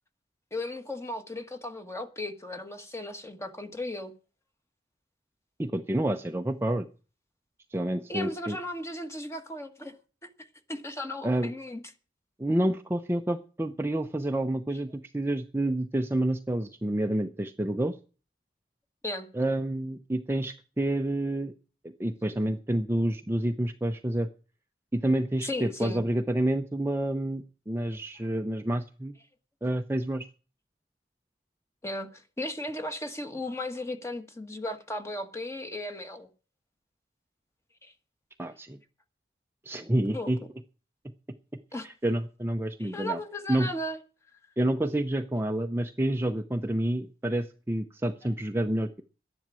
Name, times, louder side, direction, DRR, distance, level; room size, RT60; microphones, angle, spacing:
voice 1, 0.5-4.1 8.1-9.9 10.2-11.8 19.0-19.3 25.4-26.0 31.8-36.3 37.8-37.9 40.1-40.3 41.7-41.8 42.8-44.0, left 1 dB, 15° left, 1.4 m, -36 dB
voice 2, 5.6-6.9 7.7-8.6 11.2-11.5 12.4-18.0 19.3-21.5 21.8-24.3 24.9-29.1 29.6-30.3 38.4-38.8 39.6-40.4 41.8-43.2 43.5-43.7 44.6-49.0, right 1 dB, 15° right, 0.6 m, -28 dB
12.0 x 10.5 x 6.2 m
head